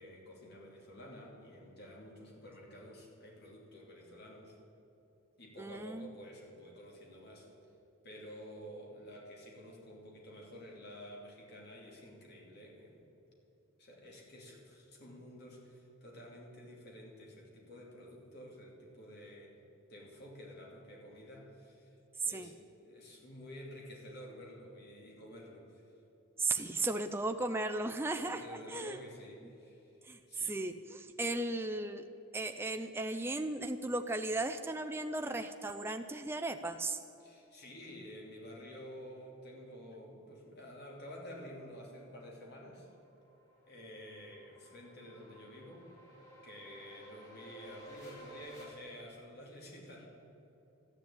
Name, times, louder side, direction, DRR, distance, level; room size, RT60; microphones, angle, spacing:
voice 1, 0.0-4.6 5.4-7.5 8.0-13.1 13.8-19.5 19.9-21.9 22.2-25.8 28.2-30.0 30.3-30.6 37.2-42.9 43.7-45.9 46.4-50.1, equal, 50° left, -2 dB, 2.9 m, -51 dB
voice 2, 5.6-6.1 22.2-22.5 26.4-29.0 30.0-32.0 32.3-37.0, right 2 dB, 10° right, 6 dB, 0.4 m, -36 dB
sound 1, 42.1-48.6, right 1 dB, 90° left, 4.6 m, -55 dB
13.0 x 10.5 x 8.9 m, 2.9 s
head